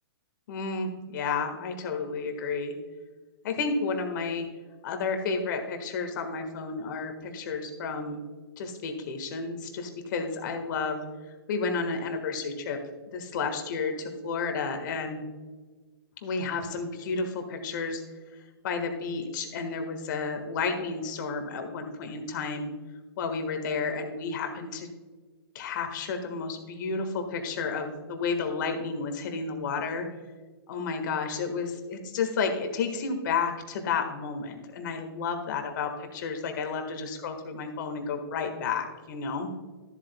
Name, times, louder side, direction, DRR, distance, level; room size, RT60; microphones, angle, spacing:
voice 1, 0.5-2.7 3.4-4.5 4.8-8.2 8.6-11.0 11.5-12.8 13.1-15.3 16.2-18.0 18.6-22.7 23.2-24.9 25.5-30.1 30.7-39.5, left 4 dB, 50° left, 6 dB, 1.6 m, -31 dB
13.0 x 7.9 x 2.2 m, 1.3 s
hypercardioid pair, 140°, 13 cm